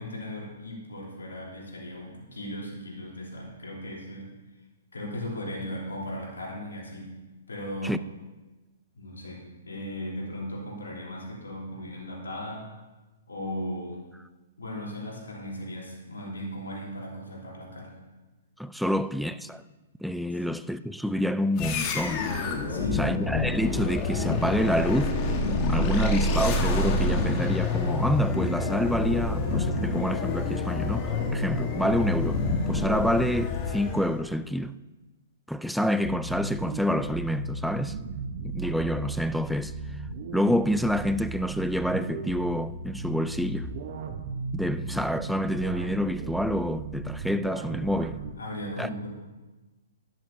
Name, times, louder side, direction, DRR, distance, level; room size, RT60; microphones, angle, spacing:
voice 1, 0.0-4.3 4.9-7.1 7.5-8.0 8.9-12.6 13.3-14.0 14.6-18.0 18.8-18.9 22.7-23.1 47.8-49.1, left 1 dB, 75° left, 3.5 m, -37 dB
voice 2, 18.6-19.6 20.0-22.2 22.9-25.2 25.7-34.7 35.5-38.0 38.4-39.7 40.3-43.7 44.5-48.2 48.8-48.9, equal, ahead, 0.4 m, -27 dB
sound 1, 21.6-34.2, left 2 dB, 30° left, 1.5 m, -27 dB
sound 2, 36.0-48.3, right 4 dB, 50° right, 1.0 m, -36 dB
11.5 x 11.5 x 2.8 m
figure-of-eight pair, 120°, 0 cm